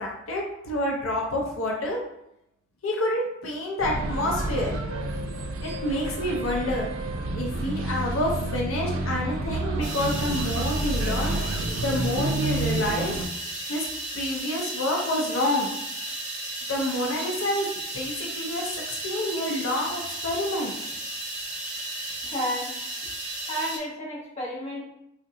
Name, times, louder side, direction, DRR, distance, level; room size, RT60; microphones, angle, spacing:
voice 1, 0.0-2.0 2.8-4.7 5.6-6.9 7.3-11.4 11.8-13.2 13.7-13.9 14.1-15.7 16.7-20.7, left 1 dB, 90° left, -1 dB, 0.6 m, -28 dB
sound 1, 3.8-13.3, right 2 dB, 80° right, 0.4 m, -29 dB
sound 2, 9.8-23.8, right 1 dB, 40° right, 0.8 m, -34 dB
voice 2, 22.2-22.7 23.5-24.8, equal, 35° left, -5 dB, 0.9 m, -31 dB
3.6 x 2.2 x 2.6 m, 0.80 s
head